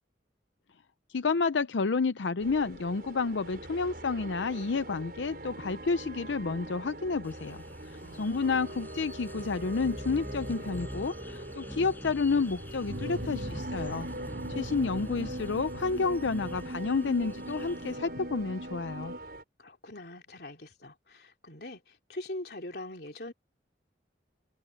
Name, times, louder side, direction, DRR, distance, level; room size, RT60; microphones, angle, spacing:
voice 1, 1.1-14.1 14.5-19.1, left 4 dB, 90° left, 0.6 m, -30 dB
sound 1, 2.4-19.4, right 1 dB, 55° right, 6.2 m, -44 dB
sound 2, 7.2-18.0, equal, 10° left, 5.4 m, -44 dB
voice 2, 8.0-8.7 19.6-23.3, left 1 dB, 60° left, 3.5 m, -43 dB
sound 3, 12.9-19.2, equal, 85° right, 1.4 m, -40 dB
head